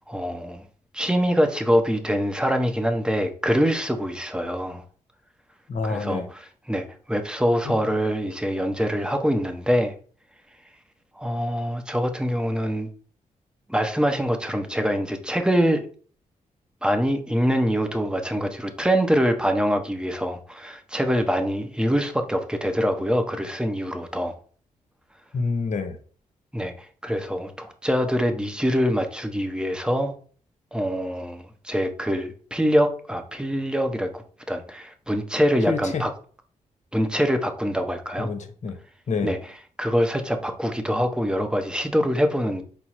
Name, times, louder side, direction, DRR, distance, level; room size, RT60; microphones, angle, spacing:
voice 1, 0.1-0.6 0.9-4.8 5.8-9.9 11.2-12.9 13.7-15.8 16.8-24.3 26.5-30.1 30.7-36.1 36.9-38.3 39.2-39.4 39.8-42.6, equal, 5° right, 0.8 m, -24 dB
voice 2, 5.7-6.3 7.6-7.8 25.3-26.0 35.7-36.0 38.2-38.8 39.1-39.3, left 4 dB, 55° left, 0.8 m, -27 dB
4.4 x 2.0 x 4.1 m
supercardioid pair, 50°, 15 cm